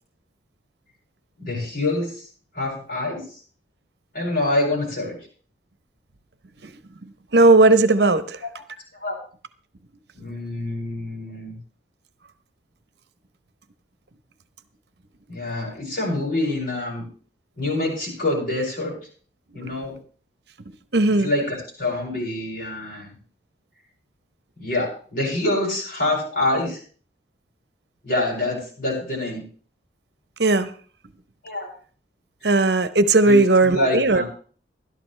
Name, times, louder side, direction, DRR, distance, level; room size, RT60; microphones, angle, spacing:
voice 1, 1.4-2.3 2.5-3.4 4.1-5.2 8.9-9.2 10.1-11.6 15.3-17.0 17.6-18.9 19.5-20.0 21.2-23.1 24.6-26.8 28.0-29.4 31.4-31.7 33.2-34.2, left 2 dB, 55° left, -2 dB, 7.4 m, -26 dB
voice 2, 7.3-8.4 19.6-19.7 20.9-21.3 30.4-30.7 32.4-34.2, right 2 dB, 65° right, 12 dB, 0.9 m, -16 dB
16.0 x 12.5 x 3.3 m, 0.43 s
head